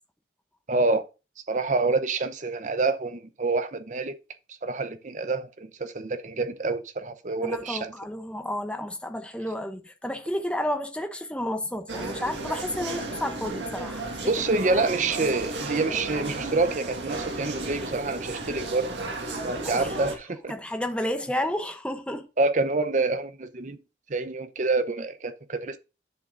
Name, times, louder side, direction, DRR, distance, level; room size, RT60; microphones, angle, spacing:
voice 1, 0.7-1.1 1.5-4.1 4.6-7.9 14.2-18.9 19.2-20.5 22.4-23.8 24.1-25.8, right 3 dB, 45° right, 0.7 m, -27 dB
voice 2, 7.4-14.0 14.7-14.9 19.6-20.0 20.5-22.3, left 1 dB, 5° left, 0.8 m, -31 dB
sound 1, 11.9-20.2, right 2 dB, 90° right, 1.7 m, -34 dB
10.5 x 6.3 x 2.6 m
head